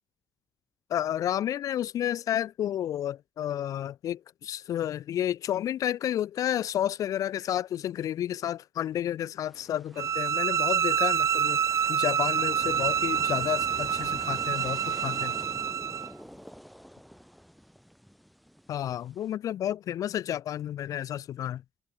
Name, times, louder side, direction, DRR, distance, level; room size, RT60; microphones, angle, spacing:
voice 1, 0.9-11.6 11.9-15.4 18.7-21.6, left 11 dB, 80° left, 2.1 m, -31 dB
sound 1, 9.5-19.3, equal, ahead, 3.4 m, -46 dB
sound 2, 10.0-16.1, right 8 dB, 60° right, 1.4 m, -27 dB
cardioid pair, 95°, 6 cm